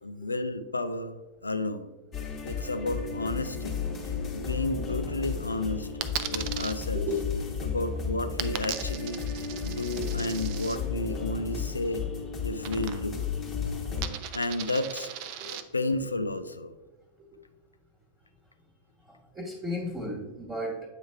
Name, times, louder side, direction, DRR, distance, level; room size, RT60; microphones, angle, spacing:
voice 1, 0.0-1.9 2.4-3.8 4.3-5.9 6.3-7.0 7.6-9.2 9.6-12.1 12.4-13.3 14.3-15.1 15.5-16.7, left 2 dB, 80° left, 11 dB, 0.4 m, -32 dB
sound 1, 2.1-14.1, left 6 dB, 30° left, 1.2 m, -33 dB
Coin (dropping), 6.0-6.7 8.4-10.8 12.6-13.3 13.5-15.6, right 11 dB, 45° right, 0.4 m, -37 dB
voice 2, 19.1-20.9, left 1 dB, 15° right, -3 dB, 1.3 m, -34 dB
8.5 x 3.1 x 4.5 m, 1.2 s
figure-of-eight pair, 90°, 0 cm